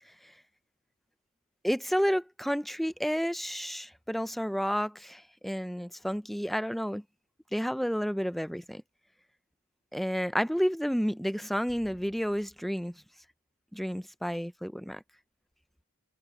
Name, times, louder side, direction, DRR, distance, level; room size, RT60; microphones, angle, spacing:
voice 1, 1.6-7.0 7.5-8.8 9.9-12.9 13.7-15.0, equal, ahead, 0.5 m, -31 dB
head